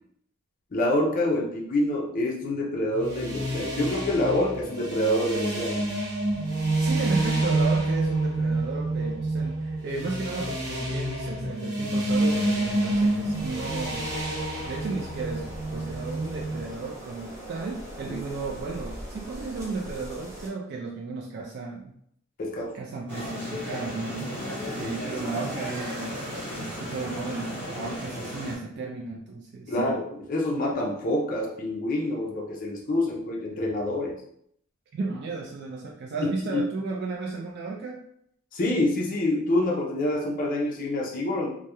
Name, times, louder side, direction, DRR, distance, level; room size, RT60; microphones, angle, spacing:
voice 1, 0.7-5.8 18.1-18.2 22.4-22.7 24.8-24.9 29.7-30.0 30.3-34.2 36.2-36.6 38.5-41.5, left 1 dB, 40° left, -1 dB, 0.4 m, -26 dB
sound 1, 2.9-16.6, right 2 dB, 90° right, 0.8 m, -28 dB
voice 2, 6.8-14.1 14.7-21.9 22.7-24.3 24.7-30.0 34.9-38.0, right 3 dB, 50° right, -1 dB, 0.3 m, -34 dB
sound 2, 12.1-20.5, right 1 dB, 15° right, 0.6 m, -42 dB
sound 3, 23.1-28.6, left 1 dB, 10° left, 0.9 m, -35 dB
2.2 x 2.0 x 2.8 m, 0.69 s
head